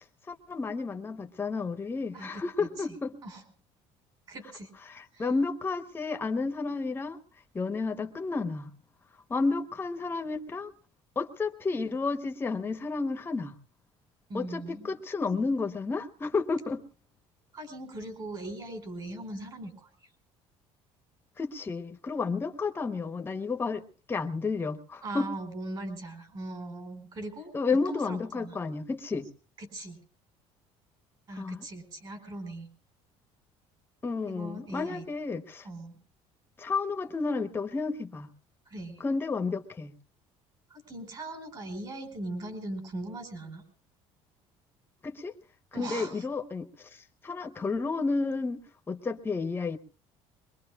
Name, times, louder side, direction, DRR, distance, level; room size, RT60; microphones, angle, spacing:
voice 1, 0.3-3.1 4.9-7.2 7.5-8.7 9.3-10.7 11.2-13.5 14.3-16.8 21.4-23.8 24.1-25.3 27.5-29.2 31.4-31.6 34.0-35.6 36.6-38.3 39.0-39.9 45.0-45.3 45.7-46.7 47.2-49.8, left 4 dB, 20° left, 7 dB, 1.0 m, -31 dB
voice 2, 2.1-3.0 3.2-3.4 4.3-4.7 5.1-5.3 14.3-14.9 17.5-19.9 25.0-28.6 29.6-30.0 31.3-32.7 34.3-35.1 35.6-36.0 38.7-39.0 40.7-43.6 45.7-46.3, right 2 dB, 35° right, 7 dB, 4.5 m, -40 dB
23.0 x 22.0 x 2.4 m, 0.38 s
cardioid pair, 140°, 12 cm